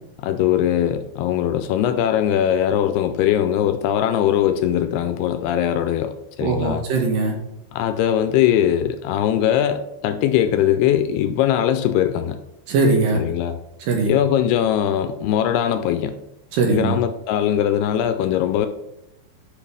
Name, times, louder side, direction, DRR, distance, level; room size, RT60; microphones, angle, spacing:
voice 1, 0.2-6.8 7.7-12.4 13.1-13.6 14.1-16.2 16.7-18.7, left 10 dB, 80° left, 9 dB, 2.4 m, -20 dB
voice 2, 6.4-7.4 12.7-13.2 13.9-14.1 16.5-17.0, right 3 dB, 70° right, 2 dB, 2.4 m, -20 dB
11.0 x 5.3 x 3.4 m, 0.86 s
omnidirectional pair, 4.8 m